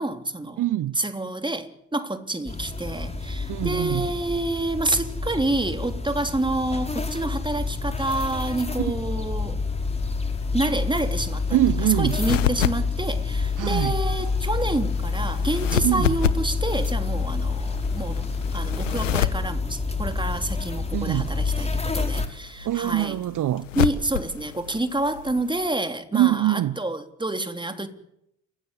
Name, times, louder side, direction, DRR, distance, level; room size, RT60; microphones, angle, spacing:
voice 1, 0.0-0.6 1.0-9.6 10.5-11.6 12.0-18.3 18.5-23.2 23.8-27.9, right 2 dB, 15° right, 3.4 m, -28 dB
voice 2, 0.6-1.0 3.5-4.1 11.5-12.2 13.6-14.0 15.8-16.1 20.9-21.3 22.6-23.7 26.1-26.8, right 14 dB, 55° right, 1.0 m, -23 dB
sound 1, 2.5-22.3, left 4 dB, 15° left, 4.9 m, -28 dB
sound 2, 9.6-25.7, left 9 dB, 90° left, 1.2 m, -32 dB
29.5 x 16.5 x 8.4 m
hypercardioid pair, 45°, 37 cm